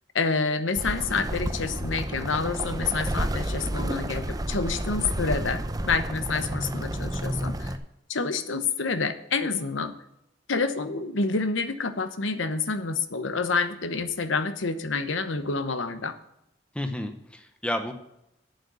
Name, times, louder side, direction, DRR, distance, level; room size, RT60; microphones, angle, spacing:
voice 1, 0.1-7.8 8.1-9.9 10.5-16.2, left 4 dB, 80° left, 10 dB, 1.0 m, -28 dB
sound 1, 0.7-7.8, right 1 dB, 20° right, 0.6 m, -30 dB
voice 2, 16.7-17.9, left 1 dB, 5° left, 6 dB, 0.9 m, -31 dB
8.9 x 7.8 x 6.8 m, 0.82 s
head